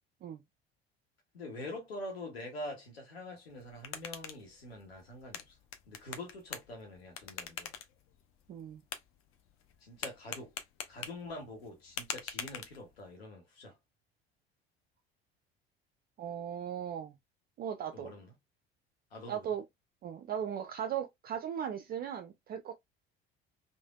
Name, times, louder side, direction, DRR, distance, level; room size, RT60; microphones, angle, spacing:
voice 1, 1.3-5.6 5.9-7.7 9.8-10.5 10.9-13.8 17.9-18.3 19.1-19.4, left 1 dB, 80° left, 0.9 m, -45 dB
sound 1, 3.5-13.2, left 8 dB, 45° left, 0.6 m, -46 dB
voice 2, 8.5-8.8 16.2-17.1 17.6-18.1 19.3-19.6 20.0-22.7, right 9 dB, 30° right, 0.4 m, -37 dB
3.2 x 2.1 x 2.3 m
figure-of-eight pair, 60°, 31 cm